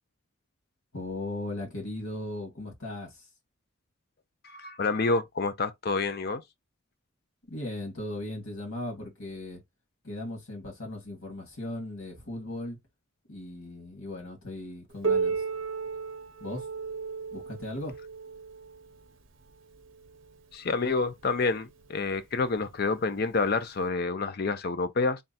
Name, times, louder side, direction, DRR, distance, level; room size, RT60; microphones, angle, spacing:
voice 1, 0.9-3.3 7.5-9.6 10.0-12.8 13.3-15.4 16.4-16.6 17.3-17.9, left 1 dB, 90° left, 2.1 m, -37 dB
voice 2, 4.4-6.4 20.5-25.2, left 3 dB, 45° left, 0.5 m, -28 dB
Piano, 15.0-20.4 21.2-21.3 21.8-21.9 22.7-22.8 23.8-23.9, right 5 dB, 65° right, 0.8 m, -34 dB
3.6 x 2.2 x 4.1 m
head